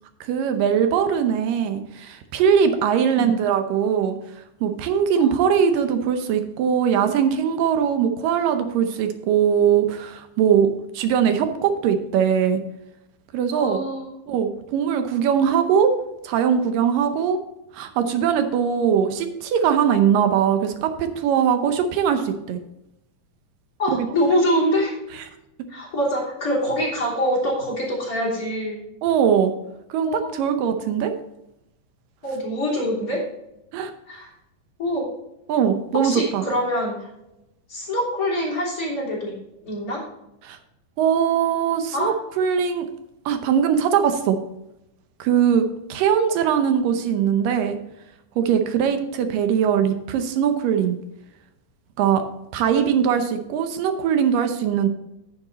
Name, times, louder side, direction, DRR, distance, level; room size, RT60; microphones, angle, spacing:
voice 1, 0.2-4.2 4.6-12.6 13.3-13.8 14.3-16.0 16.2-17.4 17.7-22.6 23.9-24.1 29.0-29.5 29.9-31.1 33.7-33.9 35.5-36.5 40.4-40.6 41.0-42.9 43.3-44.4 45.2-47.8 48.4-51.0 52.0-52.2 52.5-54.9, right 8 dB, 80° right, 7 dB, 2.4 m, -21 dB
voice 2, 13.5-14.1 23.8-24.9 25.7-28.8 30.0-30.4 32.2-33.2 34.1-34.3 34.8-35.1 36.0-37.1 37.7-39.3 39.6-40.0 41.9-42.1, equal, 25° left, -5 dB, 3.5 m, -24 dB
10.0 x 7.0 x 4.0 m, 0.89 s
omnidirectional pair, 4.0 m